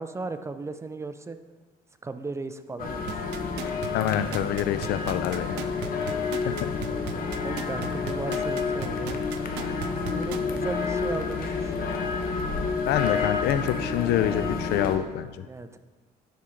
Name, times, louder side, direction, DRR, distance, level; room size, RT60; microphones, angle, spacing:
voice 1, 0.0-1.4 2.0-3.1 5.7-5.8 7.4-9.2 10.1-12.1 15.4-15.8, right 3 dB, 15° right, 10 dB, 0.4 m, -36 dB
sound 1, 2.8-15.0, left 5 dB, 60° left, 0.9 m, -29 dB
sound 2, 3.1-10.6 11.0-11.1, right 13 dB, 90° right, 0.4 m, -37 dB
voice 2, 3.7-5.6 6.4-6.6 12.9-15.5, left 11 dB, 75° left, 12 dB, 0.4 m, -27 dB
10.0 x 4.4 x 3.8 m, 1.3 s
cardioid pair, 110°, 17 cm